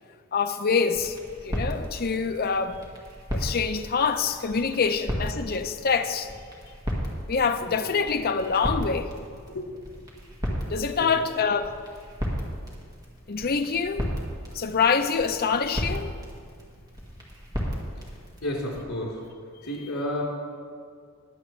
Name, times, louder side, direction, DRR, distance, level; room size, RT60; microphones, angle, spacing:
voice 1, 0.3-1.2 1.4-2.7 3.3-6.3 7.3-9.1 10.7-11.7 13.3-14.1 14.5-16.1, left 5 dB, 45° left, 0.6 m, -25 dB
sound 1, 0.9-18.8, equal, 20° right, 1.7 m, -35 dB
voice 2, 18.4-19.2 19.6-20.2, left 1 dB, 80° left, 3.4 m, -31 dB
21.0 x 7.7 x 3.2 m
head